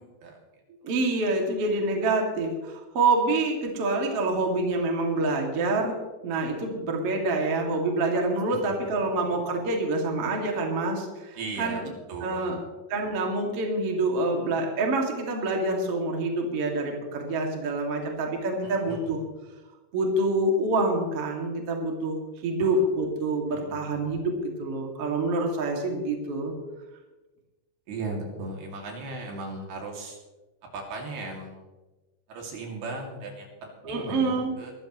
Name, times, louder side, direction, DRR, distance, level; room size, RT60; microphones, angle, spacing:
voice 1, 0.8-6.0 6.2-11.8 12.2-12.6 12.9-19.2 19.9-26.5 33.8-34.5, right 2 dB, 40° right, 1 dB, 2.4 m, -27 dB
voice 2, 11.4-12.6 18.6-19.0 22.6-22.8 23.5-24.0 27.9-30.2 30.7-31.6 32.3-34.7, right 2 dB, 60° right, 0 dB, 4.1 m, -37 dB
22.5 x 14.0 x 3.1 m, 1.2 s
omnidirectional pair, 5.3 m